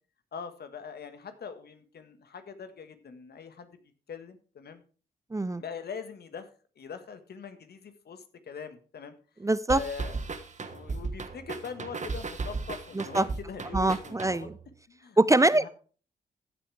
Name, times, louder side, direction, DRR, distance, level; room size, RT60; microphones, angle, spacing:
voice 1, 0.3-3.8 4.1-4.8 5.6-6.5 6.8-9.2 9.7-10.2 10.6-14.5 14.9-15.7, left 6 dB, 60° left, 9 dB, 1.6 m, -42 dB
voice 2, 5.3-5.6 9.4-9.8 12.9-13.2 13.7-14.5 15.2-15.7, right 2 dB, 15° right, 17 dB, 0.6 m, -24 dB
sound 1, 9.7-14.7, right 4 dB, 40° right, 1.4 m, -36 dB
14.5 x 8.2 x 3.4 m, 0.38 s
hypercardioid pair, 40°, 19 cm